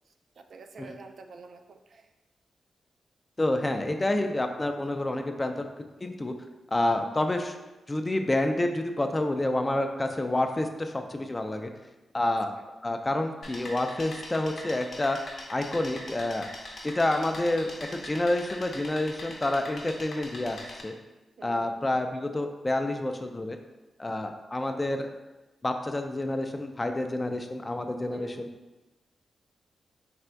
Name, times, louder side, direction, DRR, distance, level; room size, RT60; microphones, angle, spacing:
voice 1, 0.4-2.1 10.1-10.3 12.3-12.4 21.4-21.8 28.1-28.5, right 4 dB, 70° right, 6 dB, 0.3 m, -48 dB
voice 2, 3.4-5.6 6.0-6.3 6.7-7.6 7.9-11.7 12.1-12.5 12.8-15.2 15.5-16.5 16.8-20.6 20.8-20.9 21.4-23.6 24.0-25.1 25.6-28.5, left 1 dB, 25° left, 5 dB, 0.4 m, -28 dB
sound 1, 13.4-20.8, left 1 dB, 60° left, 0.7 m, -42 dB
3.4 x 2.5 x 4.4 m, 1.1 s
cardioid pair, 80°, 0 cm